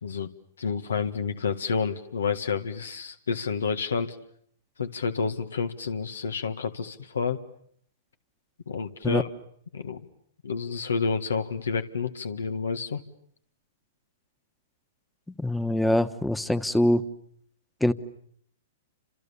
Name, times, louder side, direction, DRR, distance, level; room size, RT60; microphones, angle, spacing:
voice 1, 0.6-4.2 4.8-7.4 8.7-9.3 9.7-10.1 10.4-13.0, left 5 dB, 85° left, 9 dB, 1.7 m, -29 dB
voice 2, 15.4-17.0 17.8-17.9, left 1 dB, 5° left, 13 dB, 1.3 m, -23 dB
30.0 x 27.0 x 7.1 m, 0.67 s
hypercardioid pair, 125°, 0 cm